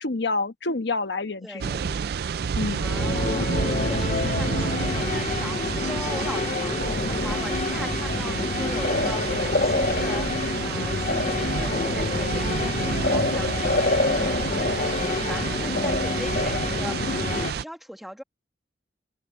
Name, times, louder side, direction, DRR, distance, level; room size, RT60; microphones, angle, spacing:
voice 1, 0.0-1.9 2.6-2.9, left 3 dB, 80° left, 1.2 m, -28 dB
voice 2, 1.4-1.9 2.8-18.2, equal, ahead, 1.8 m, -40 dB
sound 1, 1.6-17.6, right 6 dB, 60° right, 0.4 m, -30 dB
sound 2, 2.8-17.5, left 4 dB, 45° left, 0.4 m, -29 dB
sound 3, 6.8-17.4, left 2 dB, 60° left, 1.2 m, -29 dB
head